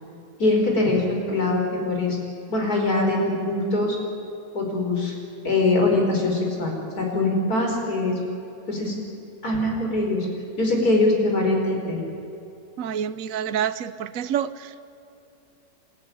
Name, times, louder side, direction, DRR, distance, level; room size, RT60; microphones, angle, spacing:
voice 1, 0.4-2.2 2.5-4.0 4.5-5.1 5.4-8.2 8.7-8.9 9.4-10.3 10.6-12.0, left 2 dB, 55° left, 1 dB, 5.0 m, -22 dB
voice 2, 12.8-14.7, right 9 dB, 55° right, 13 dB, 1.1 m, -27 dB
28.5 x 13.5 x 9.9 m, 2.8 s
omnidirectional pair, 1.9 m